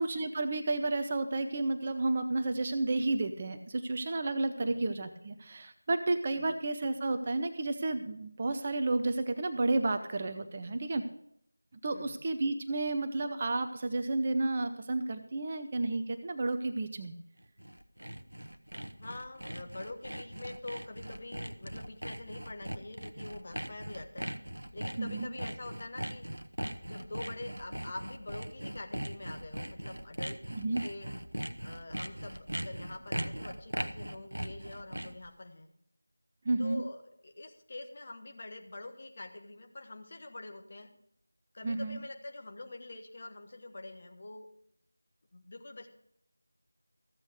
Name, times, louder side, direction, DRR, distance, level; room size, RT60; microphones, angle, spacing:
voice 1, 0.0-11.0 11.8-17.1 25.0-25.3 30.5-30.8 36.4-36.8 41.6-42.0, right 2 dB, 25° right, 9 dB, 0.5 m, -31 dB
Sawing, 17.4-35.3, right 1 dB, 65° right, 0.9 m, -40 dB
voice 2, 18.9-24.3 24.7-26.3 26.8-31.1 31.6-35.7 36.6-40.9 41.5-44.5 45.3-45.9, left 2 dB, 35° left, 5 dB, 1.3 m, -45 dB
14.5 x 8.1 x 5.0 m, 0.72 s
figure-of-eight pair, 170°, 0 cm